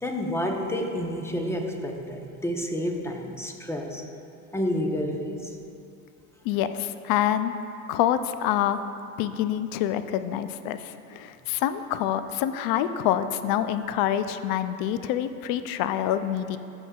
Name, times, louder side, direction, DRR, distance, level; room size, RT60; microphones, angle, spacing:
voice 1, 0.0-4.0 4.5-5.5, equal, 5° left, 2 dB, 0.8 m, -29 dB
voice 2, 6.4-7.5 7.9-8.8 9.2-16.6, left 11 dB, 50° left, 11 dB, 0.5 m, -26 dB
14.5 x 6.3 x 2.4 m, 2.6 s
hypercardioid pair, 85°, 45 cm